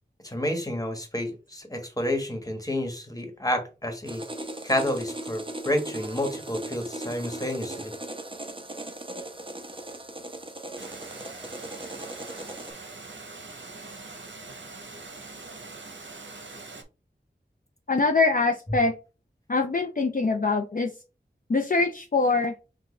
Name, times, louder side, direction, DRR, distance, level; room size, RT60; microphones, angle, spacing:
voice 1, 0.2-4.2 4.6-7.9, left 1 dB, 20° left, 4 dB, 1.3 m, -29 dB
sound 1, 4.0-12.7, right 1 dB, 30° right, 0.7 m, -38 dB
Water, 10.8-16.8, right 3 dB, 85° right, 0.8 m, -43 dB
voice 2, 17.9-18.9 19.5-20.9 21.5-22.5, left 3 dB, 50° left, 3 dB, 0.6 m, -23 dB
6.0 x 2.3 x 3.1 m, 0.31 s
wide cardioid pair, 45°, 19 cm